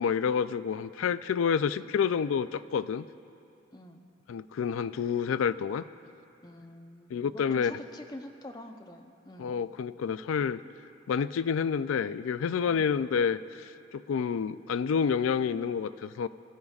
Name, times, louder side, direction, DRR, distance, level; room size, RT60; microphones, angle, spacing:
voice 1, 0.0-3.1 4.3-5.8 7.1-7.7 9.4-10.6 11.1-16.3, left 6 dB, 85° left, 15 dB, 0.3 m, -29 dB
voice 2, 3.7-4.0 6.4-9.6 12.7-13.0, left 1 dB, 20° left, 3 dB, 0.6 m, -46 dB
25.0 x 14.0 x 2.4 m, 2.6 s
head